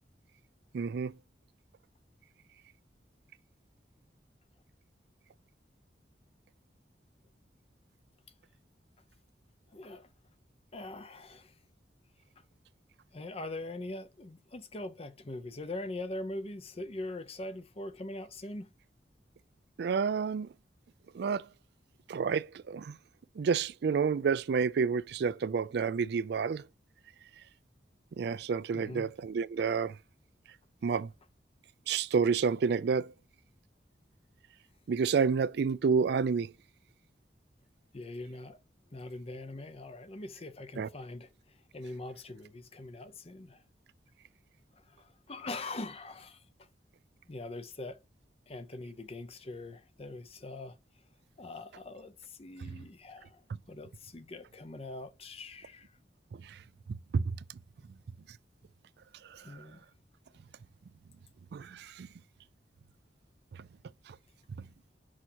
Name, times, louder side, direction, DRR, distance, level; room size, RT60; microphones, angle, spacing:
voice 1, 0.7-1.1 19.8-20.5 21.1-21.4 22.1-23.0 23.4-26.6 28.2-30.0 30.8-31.1 31.9-33.1 34.9-36.5 40.8-40.9 52.6-52.7 56.3-56.6 57.1-57.3 59.3-59.6 61.5-62.1 64.1-64.2, right 5 dB, 65° right, 0.4 m, -29 dB
voice 2, 9.7-10.1 10.7-11.5 13.1-18.7 28.7-29.1 37.9-38.6 38.9-43.6 44.9-46.7 47.3-48.0 48.5-50.8 51.4-53.4 53.7-55.9 59.4-59.9, left 2 dB, 35° left, 0.7 m, -42 dB
6.3 x 5.6 x 2.9 m
head